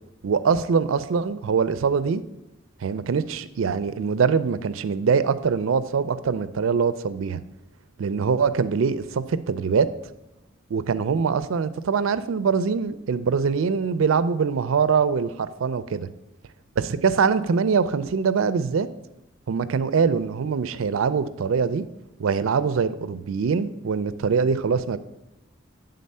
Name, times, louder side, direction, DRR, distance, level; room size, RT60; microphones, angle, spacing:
voice 1, 0.2-2.2 2.8-7.4 8.0-9.9 10.7-16.1 16.8-18.9 19.5-21.8 22.2-25.0, right 5 dB, 75° right, 14 dB, 0.4 m, -23 dB
9.4 x 3.9 x 5.4 m, 0.92 s
head